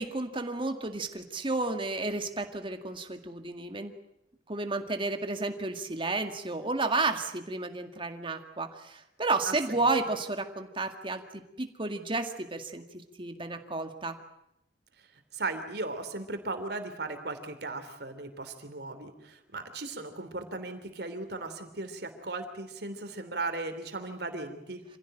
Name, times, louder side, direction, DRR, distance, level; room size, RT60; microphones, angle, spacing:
voice 1, 0.0-3.9 4.5-11.2 11.6-12.8 13.2-14.2, right 3 dB, 30° right, 6 dB, 2.0 m, -32 dB
voice 2, 9.5-9.8 15.3-24.8, right 2 dB, 65° right, 8 dB, 3.2 m, -37 dB
26.5 x 16.0 x 9.0 m, 0.82 s
head